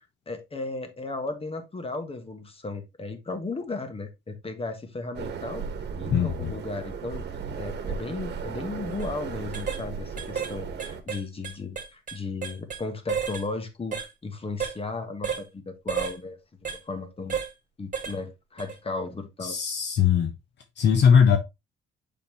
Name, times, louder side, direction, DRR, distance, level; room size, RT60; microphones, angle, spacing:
voice 1, 0.0-5.7 6.0-7.2 7.5-16.4 16.8-17.4 17.8-19.6, left 3 dB, 30° left, 1.5 m, -35 dB
sound 1, 5.1-11.0, right 6 dB, 60° right, 1.3 m, -35 dB
voice 2, 6.1-6.5 19.4-20.3 20.8-21.4, left 7 dB, 60° left, 0.9 m, -20 dB
sound 2, 8.9-9.1 9.5-9.8 10.2-10.5 10.8-12.8 13.1-13.4 13.9-14.1 14.6-14.8 15.2-15.4 15.9-16.2 16.6-16.8 17.3-17.5 17.9-18.2 18.6-18.7, right 7 dB, 40° right, 1.7 m, -31 dB
6.9 x 5.3 x 2.9 m
cardioid pair, 90°, 20 cm